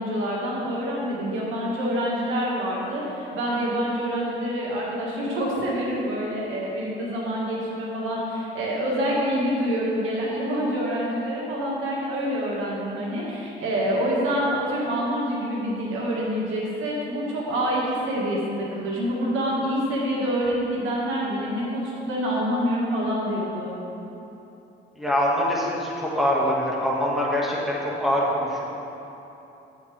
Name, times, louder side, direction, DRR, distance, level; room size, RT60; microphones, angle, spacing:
voice 1, 0.0-23.7, equal, 85° right, -4 dB, 1.8 m, -26 dB
voice 2, 25.0-28.6, equal, ahead, -5 dB, 1.8 m, -24 dB
8.9 x 8.8 x 3.4 m, 3.0 s
cardioid pair, 90°, 20 cm